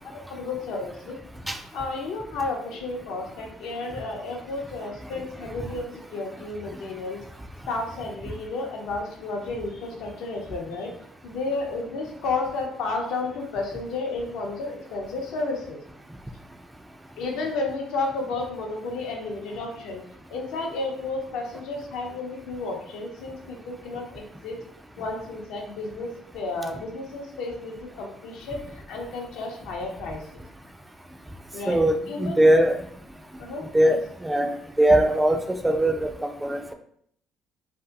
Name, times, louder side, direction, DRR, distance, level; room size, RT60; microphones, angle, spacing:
voice 1, 0.3-1.2 1.7-7.2 7.7-10.9 11.2-15.8 17.2-20.0 20.3-24.6 25.0-26.1 26.3-28.6 28.9-30.4 31.5-31.8 32.1-32.7 33.4-34.0, left 3 dB, 75° left, 1 dB, 0.6 m, -32 dB
voice 2, 31.7-32.7 33.7-34.0 34.2-34.5 34.8-36.7, right 1 dB, 10° right, 5 dB, 0.3 m, -20 dB
2.7 x 2.5 x 2.3 m, 0.66 s
supercardioid pair, 85°, 0 cm